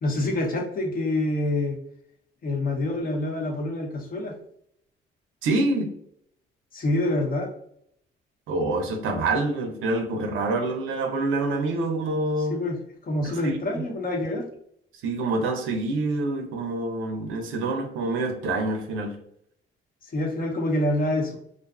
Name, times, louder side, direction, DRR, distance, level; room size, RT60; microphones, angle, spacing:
voice 1, 0.0-1.8 2.4-4.3 6.7-7.5 12.4-14.5 20.0-21.4, left 1 dB, 45° left, 1 dB, 0.8 m, -26 dB
voice 2, 5.4-5.9 8.5-12.6 13.2-13.6 15.0-19.2, right 2 dB, 85° right, 5 dB, 0.6 m, -26 dB
2.5 x 2.4 x 2.3 m, 0.68 s
cardioid pair, 90°, 20 cm